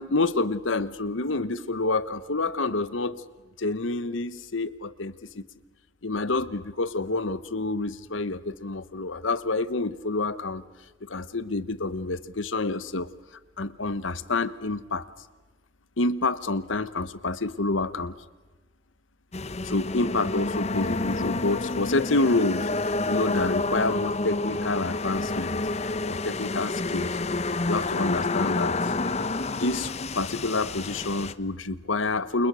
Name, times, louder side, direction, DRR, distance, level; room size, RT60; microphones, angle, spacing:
voice 1, 0.0-3.2 3.6-5.4 6.0-10.6 11.1-13.1 13.6-15.0 16.0-18.1 19.6-25.6 25.8-27.2 27.7-28.9 29.5-32.5, left 3 dB, 85° left, 15 dB, 1.2 m, -28 dB
sound 1, 19.3-31.3, left 2 dB, 35° left, 0.9 m, -29 dB
29.0 x 28.5 x 6.3 m, 1.2 s
head